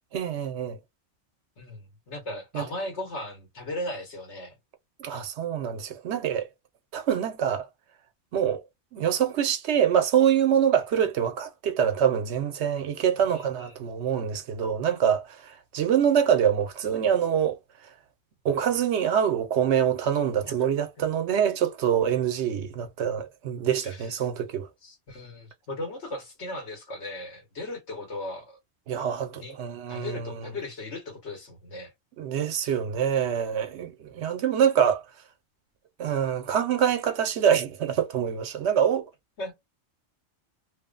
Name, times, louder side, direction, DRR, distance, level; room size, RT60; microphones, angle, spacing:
voice 1, 0.1-0.8 2.5-2.6 5.0-6.5 6.9-7.6 8.3-8.6 8.9-17.6 18.4-24.7 28.9-30.5 32.2-35.0 36.0-39.0, right 8 dB, 80° right, 0.9 m, -25 dB
voice 2, 1.6-4.5 13.3-13.8 20.5-20.7 23.8-24.3 24.8-28.6 29.3-31.9 39.4-39.5, left 1 dB, 85° left, 1.5 m, -37 dB
3.0 x 2.1 x 2.4 m
omnidirectional pair, 1.1 m